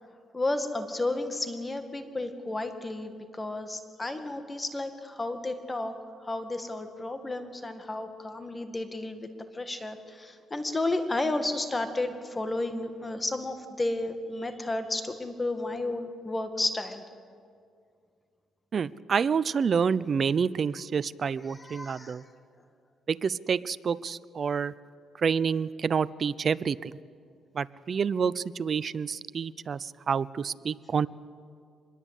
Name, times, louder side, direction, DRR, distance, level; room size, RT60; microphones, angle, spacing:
voice 1, 0.3-5.9 6.2-9.3 9.5-17.0 21.5-22.2, left 2 dB, 20° left, 7 dB, 2.1 m, -32 dB
voice 2, 18.7-22.2 23.1-24.7 25.2-26.9 27.6-29.8 30.1-31.1, right 6 dB, 45° right, 18 dB, 0.6 m, -28 dB
24.5 x 21.5 x 8.4 m, 2.3 s
cardioid pair, 90°, 0 cm